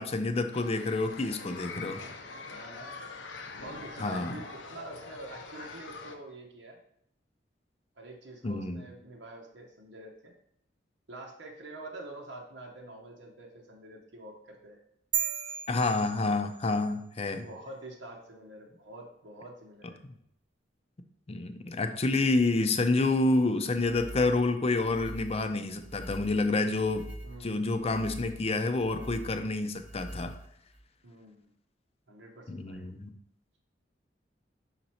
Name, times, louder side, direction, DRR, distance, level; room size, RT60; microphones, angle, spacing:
voice 1, 0.0-2.0 4.0-4.4 8.4-8.8 15.7-17.5 21.3-27.1 27.4-30.3 32.5-33.1, left 2 dB, 35° left, 8 dB, 0.5 m, -28 dB
sound 1, 0.5-6.2, left 4 dB, 90° left, 0.7 m, -44 dB
voice 2, 2.4-3.0 3.6-6.8 8.0-10.3 11.1-14.8 17.3-20.0 27.2-27.7 31.0-31.5 32.1-32.9, right 2 dB, 90° right, -1 dB, 0.9 m, -46 dB
sound 2, 15.1-16.9, right 9 dB, 70° right, 0.6 m, -34 dB
sound 3, 23.7-30.8, right 1 dB, 10° right, 0.8 m, -45 dB
5.9 x 4.1 x 4.3 m, 0.74 s
head